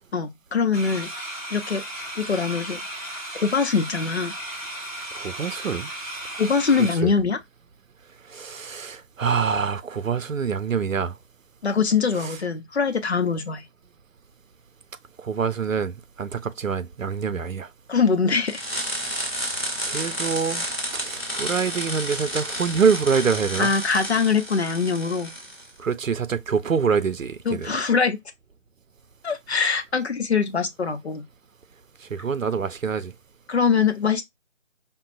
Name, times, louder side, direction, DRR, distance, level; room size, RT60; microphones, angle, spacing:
voice 1, 0.1-1.1 1.5-1.8 2.2-4.3 6.4-7.4 11.6-13.6 17.9-18.6 23.6-25.3 27.5-28.2 29.2-31.2 33.5-34.2, left 5 dB, 55° left, 0.8 m, -23 dB
sound 1, 0.7-6.9, right 1 dB, 30° right, 1.2 m, -35 dB
voice 2, 5.2-5.9 7.0-7.1 8.3-11.2 12.2-12.4 15.2-17.7 19.9-20.7 20.9-23.7 25.8-27.7 32.0-33.1, right 6 dB, 80° right, 0.6 m, -25 dB
sound 2, 18.5-25.7, equal, 10° left, 0.8 m, -31 dB
5.3 x 2.2 x 2.5 m
figure-of-eight pair, 155°, 39 cm